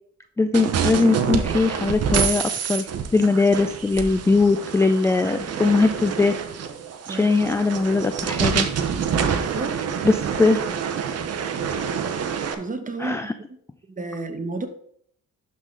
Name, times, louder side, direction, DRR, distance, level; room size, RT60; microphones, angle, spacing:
voice 1, 0.4-6.3 7.1-8.7 10.0-10.6 13.0-13.3, left 3 dB, 10° left, 0.3 m, -20 dB
sound 1, 0.5-12.5, right 7 dB, 55° right, 0.9 m, -27 dB
voice 2, 9.3-9.8 12.3-13.3 14.0-14.7, right 3 dB, 25° right, 1.1 m, -32 dB
11.0 x 3.9 x 3.7 m
cardioid pair, 90°, 30 cm